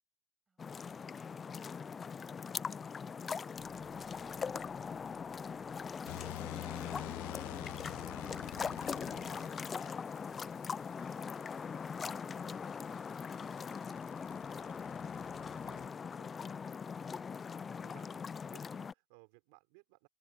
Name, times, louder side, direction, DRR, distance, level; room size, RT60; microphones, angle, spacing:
sound 1, 0.6-18.9, left 6 dB, 25° left, 0.4 m, -41 dB
Bass guitar, 3.6-13.3, right 12 dB, 45° right, 5.7 m, -69 dB
sound 2, 6.1-9.9 12.2-15.9, left 25 dB, 65° left, 0.7 m, -47 dB
voice 1, 13.5-14.2, right 5 dB, 20° right, 7.2 m, -76 dB
voice 2, 14.4-14.8 15.6-16.4 17.8-20.1, right 33 dB, 65° right, 5.3 m, -63 dB
open air
hypercardioid pair, 90°, 0 cm